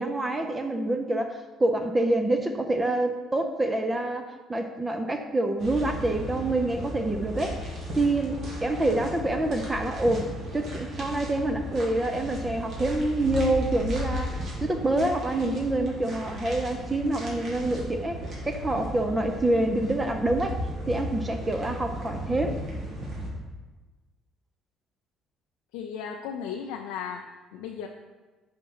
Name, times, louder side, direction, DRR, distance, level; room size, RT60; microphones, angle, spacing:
voice 1, 0.0-7.5 7.9-18.2 18.4-20.6 20.9-22.6, right 1 dB, 20° right, 6 dB, 0.6 m, -27 dB
sound 1, 5.6-23.3, equal, 55° right, 2.0 m, -35 dB
voice 2, 25.7-27.3 27.5-27.9, left 7 dB, 90° left, 2 dB, 0.4 m, -35 dB
4.9 x 4.3 x 5.5 m, 1.3 s
cardioid pair, 90°, 0 cm